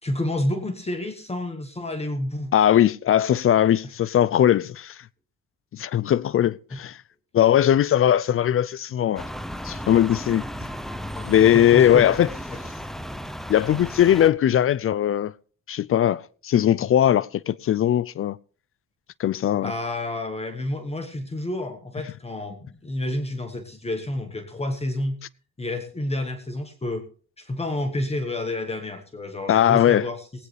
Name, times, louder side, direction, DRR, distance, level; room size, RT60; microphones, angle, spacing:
voice 1, 0.0-2.5 6.7-6.8 11.1-12.1 12.5-12.6 19.6-25.2 25.6-27.0 27.4-30.3, left 1 dB, 20° left, 1.4 m, -29 dB
voice 2, 2.5-5.0 5.7-7.0 7.3-9.3 9.6-10.4 11.2-12.3 13.5-15.3 15.7-18.4 19.2-19.7 29.5-30.1, left 10 dB, 45° left, 0.4 m, -19 dB
sound 1, 9.2-14.3, equal, ahead, 0.7 m, -35 dB
19.5 x 9.2 x 3.3 m
cardioid pair, 90°, 30 cm